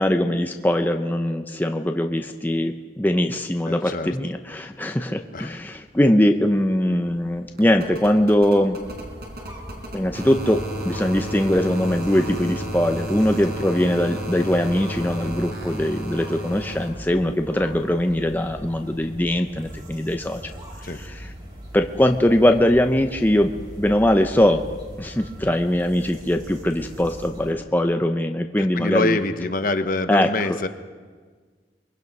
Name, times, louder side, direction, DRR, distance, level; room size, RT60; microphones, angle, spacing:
voice 1, 0.0-8.8 9.9-20.5 20.9-21.3 21.7-23.5 23.8-24.6 25.0-29.2 30.1-30.7, left 1 dB, 10° left, 5 dB, 0.7 m, -21 dB
voice 2, 3.7-4.1 5.3-5.5 20.8-21.0 28.6-30.7, left 2 dB, 50° left, 9 dB, 1.1 m, -25 dB
sound 1, 5.7-5.8 6.0-16.9 18.3-18.4, right 1 dB, 60° right, 4.6 m, -33 dB
sound 2, 8.8-27.5, equal, 25° right, 4.8 m, -40 dB
24.0 x 22.0 x 5.5 m, 1.5 s
head